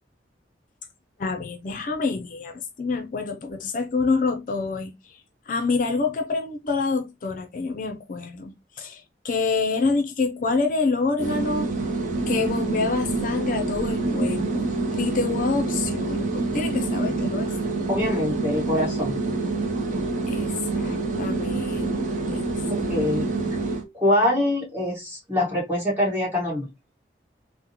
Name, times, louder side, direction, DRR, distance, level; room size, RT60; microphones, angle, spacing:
voice 1, 1.2-5.2 5.5-11.7 12.3-17.5 20.3-22.4 22.8-22.9 23.2-23.3, left 4 dB, 45° left, 0.4 m, -27 dB
sound 1, 11.2-23.8, right 3 dB, 45° right, 0.5 m, -27 dB
voice 2, 17.9-19.2 22.7-23.3 23.9-26.7, left 1 dB, 10° right, 1.5 m, -24 dB
3.6 x 2.0 x 2.8 m
head